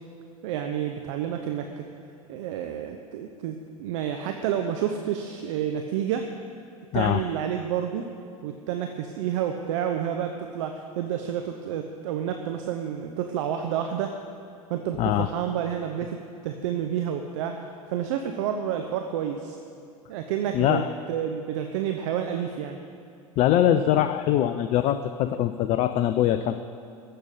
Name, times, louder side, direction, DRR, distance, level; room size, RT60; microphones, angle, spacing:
voice 1, 0.4-1.8 2.3-6.3 6.9-8.1 8.4-14.1 14.7-16.2 16.4-17.6 17.9-19.6 20.1-20.8 21.1-22.8, right 9 dB, 55° right, 5 dB, 0.8 m, -29 dB
voice 2, 15.0-15.3 20.5-20.9 23.4-26.6, left 11 dB, 35° left, 10 dB, 0.5 m, -22 dB
14.5 x 6.8 x 8.9 m, 2.5 s
figure-of-eight pair, 85°, 19 cm